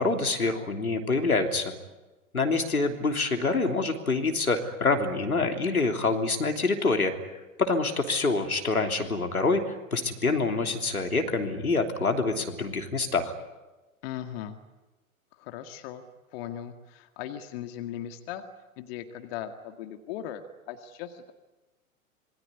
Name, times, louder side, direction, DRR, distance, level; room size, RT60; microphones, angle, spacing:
voice 1, 0.0-1.7 2.3-7.1 7.6-13.3, left 3 dB, 80° left, 5 dB, 3.3 m, -26 dB
voice 2, 14.0-14.6 15.4-16.0 16.3-18.4 18.8-21.3, left 10 dB, 45° left, 7 dB, 2.1 m, -38 dB
26.5 x 22.5 x 9.7 m, 1.1 s
figure-of-eight pair, 100°, 43 cm